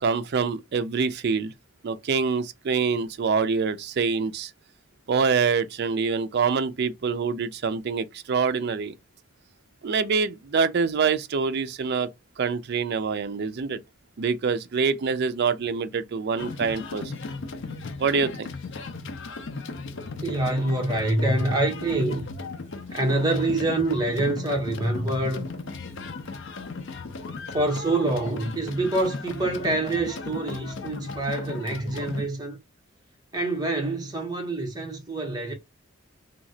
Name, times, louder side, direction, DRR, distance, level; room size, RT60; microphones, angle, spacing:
voice 1, 0.0-1.5 1.8-4.5 5.1-8.9 9.8-12.1 12.4-13.8 14.2-17.1 18.0-18.5, right 5 dB, 50° right, 0.4 m, -25 dB
sound 1, 16.4-32.3, left 3 dB, 60° left, 0.5 m, -36 dB
voice 2, 20.2-22.2 22.9-25.5 27.5-32.6 33.3-35.5, right 2 dB, 20° right, 1.0 m, -26 dB
3.0 x 2.8 x 2.7 m
head